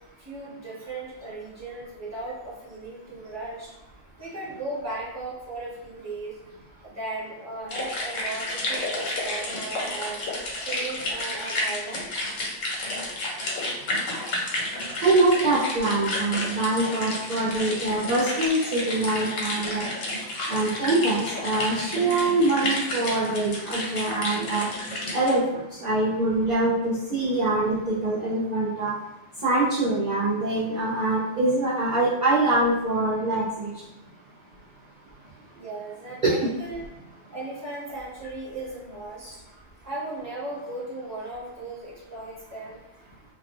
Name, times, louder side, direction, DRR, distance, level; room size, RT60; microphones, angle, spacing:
voice 1, 0.2-3.7 4.2-6.4 6.8-10.3 10.7-12.1 35.5-36.8 37.3-39.4 39.8-42.8, right 2 dB, 15° right, -8 dB, 0.8 m, -36 dB
sound 1, 7.7-25.3, left 1 dB, 75° left, 1.0 m, -31 dB
voice 2, 15.0-19.8 20.5-24.7 25.1-25.4 25.8-28.9 29.4-33.7 36.2-36.3, right 2 dB, 45° right, -9 dB, 0.6 m, -24 dB
2.3 x 2.1 x 2.9 m, 0.93 s
omnidirectional pair, 1.3 m